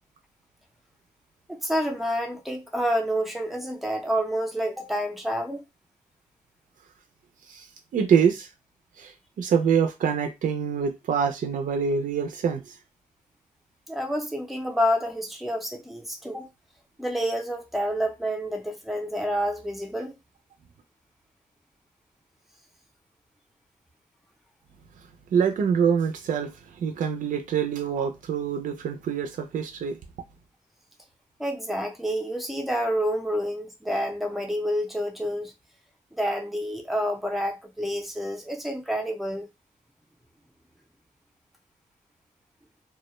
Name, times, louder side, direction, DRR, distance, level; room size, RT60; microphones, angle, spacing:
voice 1, 1.5-5.6 13.9-16.5 17.0-20.1 31.4-35.5 36.1-39.5, equal, ahead, 0.5 m, -28 dB
voice 2, 7.9-8.5 9.0-9.1 9.4-12.8 25.3-30.0, right 7 dB, 70° right, 0.4 m, -25 dB
2.2 x 2.1 x 2.9 m
wide cardioid pair, 160°, 14 cm